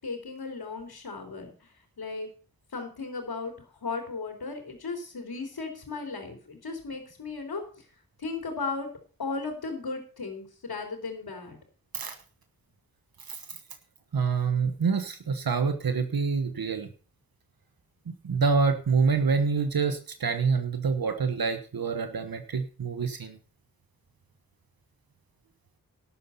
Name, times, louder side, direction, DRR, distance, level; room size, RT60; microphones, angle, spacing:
voice 1, 0.0-2.3 2.7-7.8 8.2-8.9 9.2-11.6, left 4 dB, 85° left, 2 dB, 3.2 m, -36 dB
voice 2, 14.1-16.9 18.1-23.4, right 5 dB, 75° right, 8 dB, 1.2 m, -26 dB
12.5 x 8.4 x 5.6 m, 0.40 s
wide cardioid pair, 70°, 36 cm